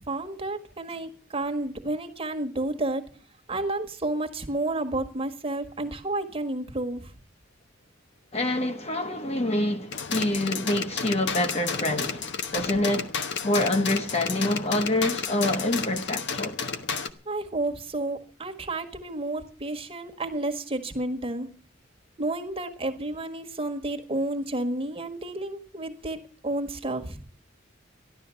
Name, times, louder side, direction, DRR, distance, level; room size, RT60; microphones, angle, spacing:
voice 1, 0.1-3.0 3.5-7.1 17.2-21.5 22.2-26.2 26.4-27.2, right 2 dB, 30° right, 1.6 m, -31 dB
voice 2, 8.3-13.1 13.4-16.6, left 1 dB, 30° left, 1.2 m, -26 dB
sound 1, 9.9-17.1, left 6 dB, 60° left, 1.0 m, -32 dB
14.0 x 11.5 x 7.0 m
head